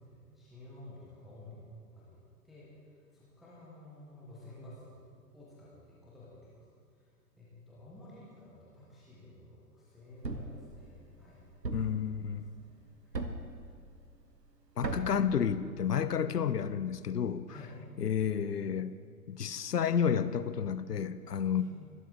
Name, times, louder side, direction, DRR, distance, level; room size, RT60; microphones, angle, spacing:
voice 1, 0.0-1.6 1.9-2.2 2.4-5.0 5.3-6.7 6.9-7.1 7.4-11.4 11.8-11.9 12.3-13.2 17.5-17.7 21.5-21.6, left 1 dB, ahead, -7 dB, 0.4 m, -52 dB
Thump thud, 10.2-10.6 11.6-12.0 13.1-13.5 14.8-15.2, right 3 dB, 80° right, 1.3 m, -36 dB
voice 2, 11.7-12.5 14.8-17.6 18.0-19.0 19.3-21.6, left 7 dB, 75° left, 14 dB, 0.8 m, -31 dB
24.0 x 11.0 x 3.5 m, 2.2 s
figure-of-eight pair, 110°, 48 cm